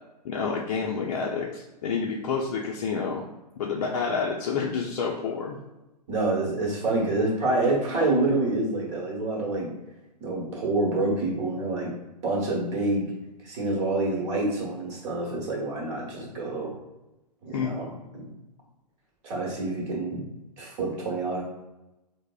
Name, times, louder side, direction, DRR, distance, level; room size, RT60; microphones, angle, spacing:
voice 1, 0.2-3.2 3.6-5.6 17.5-17.7, left 5 dB, 55° left, -2 dB, 0.4 m, -29 dB
voice 2, 6.1-9.7 10.2-11.9 12.2-13.1 13.4-16.7 17.4-18.3 19.2-20.2 20.6-21.4, right 2 dB, 45° right, -2 dB, 1.0 m, -27 dB
3.4 x 2.0 x 2.3 m, 1.0 s
hypercardioid pair, 125°, 21 cm